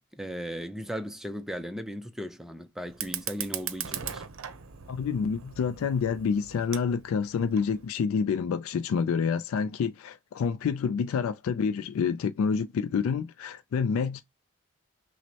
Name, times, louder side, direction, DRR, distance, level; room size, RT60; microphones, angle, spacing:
voice 1, 0.1-4.2, equal, ahead, 0.4 m, -37 dB
Fire, 2.9-7.9, right 9 dB, 80° right, 0.6 m, -39 dB
voice 2, 4.9-14.2, left 6 dB, 85° left, 0.3 m, -28 dB
6.0 x 2.1 x 2.7 m
head